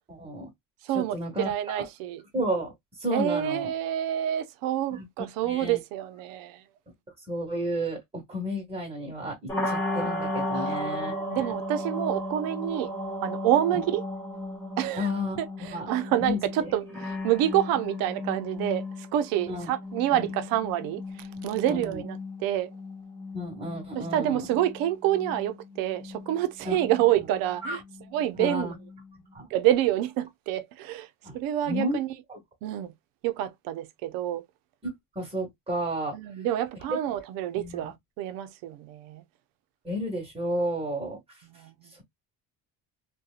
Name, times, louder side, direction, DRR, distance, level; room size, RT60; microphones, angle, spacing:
voice 1, 0.1-0.5 0.9-1.9 2.3-2.7 3.0-3.7 4.9-5.8 7.3-11.5 13.7-13.8 15.0-15.9 16.2-16.7 19.5-19.7 20.1-20.3 21.7-22.0 23.3-24.5 26.6-26.8 27.6-27.8 28.3-28.7 29.3-29.5 31.2-31.4 31.6-32.0 32.3-32.4 34.8-36.1 37.5-37.9 39.8-41.2, equal, 20° right, 1.1 m, -32 dB
voice 2, 0.8-2.2 3.1-6.6 10.5-12.9 13.2-14.0 14.8-15.1 15.4-18.9 19.1-22.7 24.0-27.8 28.1-28.7 29.5-31.1 31.3-32.1 32.6-32.9 33.2-34.4 36.1-39.2 41.4-41.9, right 12 dB, 90° right, 0.6 m, -28 dB
sound 1, 9.5-29.3, left 1 dB, 5° left, 1.0 m, -36 dB
2.7 x 2.2 x 2.3 m
cardioid pair, 135°, 33 cm